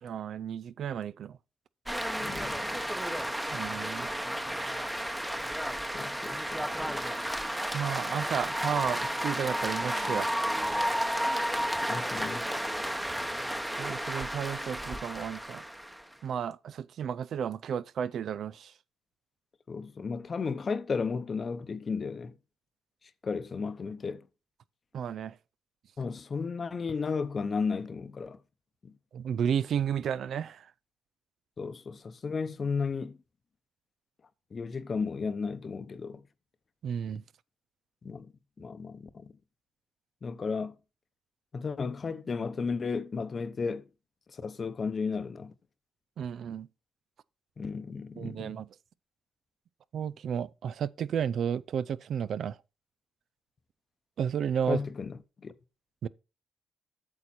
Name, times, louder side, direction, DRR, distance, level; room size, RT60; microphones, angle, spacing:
voice 1, 0.0-1.4 3.5-4.2 7.7-10.5 13.8-15.6 16.2-18.7 24.9-25.4 29.1-30.7 36.8-37.2 46.2-46.7 48.2-48.7 49.9-52.6 54.2-54.8 56.0-56.1, right 8 dB, 65° right, 0.4 m, -32 dB
sound 1, 1.9-16.1, equal, 5° right, 0.9 m, -32 dB
voice 2, 2.2-2.8 5.9-7.0 11.9-12.5 19.7-22.3 23.2-24.2 26.0-28.4 28.8-28.9 31.6-33.2 34.5-36.2 38.0-38.3 38.6-39.3 40.2-40.7 41.5-43.8 44.3-45.5 47.6-48.6 54.7-55.5, left 5 dB, 40° left, 0.8 m, -34 dB
8.5 x 6.6 x 4.3 m
cardioid pair, 90°, 0 cm